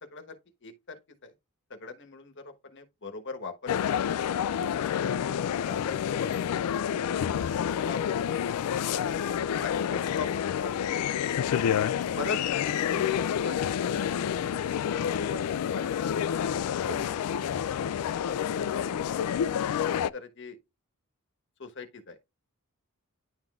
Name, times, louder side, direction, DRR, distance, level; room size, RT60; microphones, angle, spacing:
voice 1, 0.1-1.3 1.7-4.0 4.8-5.1 5.7-6.5 7.6-8.4 9.6-11.3 12.2-14.1 14.9-15.4 15.7-17.4 18.1-19.7 20.1-20.6 21.6-22.2, left 3 dB, 55° left, 1.2 m, -41 dB
sound 1, 3.7-20.1, left 9 dB, 80° left, 0.3 m, -28 dB
10.5 x 3.8 x 2.4 m
head